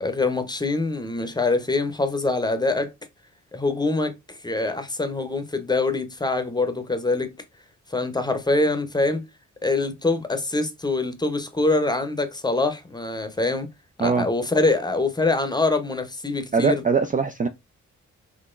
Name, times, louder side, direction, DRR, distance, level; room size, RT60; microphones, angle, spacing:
voice 1, 0.0-2.9 3.5-7.3 7.9-9.2 9.6-13.7 14.0-16.8, left 2 dB, 15° left, 0.8 m, -24 dB
voice 2, 16.5-17.5, right 5 dB, 30° right, 0.4 m, -21 dB
4.0 x 3.0 x 2.4 m
cardioid pair, 80°, 30 cm